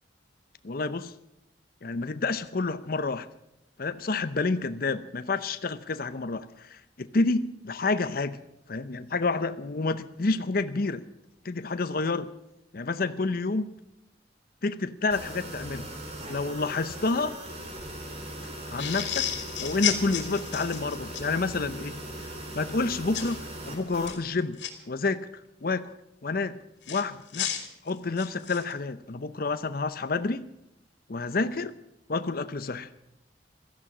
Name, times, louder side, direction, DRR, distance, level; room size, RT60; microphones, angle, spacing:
voice 1, 0.6-1.1 1.8-3.3 3.8-8.4 8.7-11.0 11.4-12.3 12.7-13.7 14.6-15.9 16.3-17.4 18.7-19.3 19.6-22.0 22.5-24.6 24.9-25.3 25.6-25.9 26.2-26.6 26.9-27.5 27.8-30.5 31.1-31.7 32.1-32.9, left 3 dB, 55° left, 12 dB, 0.7 m, -29 dB
sound 1, 15.1-24.1, right 1 dB, 35° right, 3.6 m, -39 dB
sound 2, 18.8-21.3 23.1-23.4 23.9-24.7 26.8-28.7, left 10 dB, 85° left, 2.7 m, -32 dB
16.5 x 14.0 x 6.0 m, 0.86 s
head